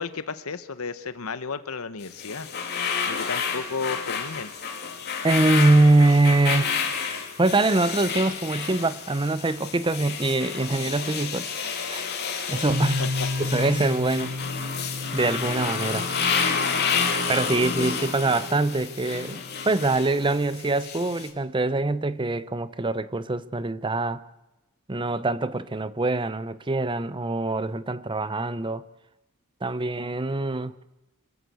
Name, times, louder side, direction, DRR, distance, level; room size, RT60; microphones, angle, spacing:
voice 1, 0.0-2.5 3.1-4.5 13.0-13.1 17.6-17.7, left 4 dB, 70° left, 1.0 m, -33 dB
sound 1, 2.0-21.3, left 6 dB, 45° left, 3.0 m, -30 dB
voice 2, 5.2-6.8 7.4-12.0 12.5-13.0 13.4-14.4 15.1-16.1 17.3-24.2 24.9-28.8 29.6-30.7, right 2 dB, 20° right, 0.7 m, -24 dB
sound 2, 12.7-20.4, left 2 dB, 75° right, 6.0 m, -34 dB
25.5 x 14.0 x 8.4 m
head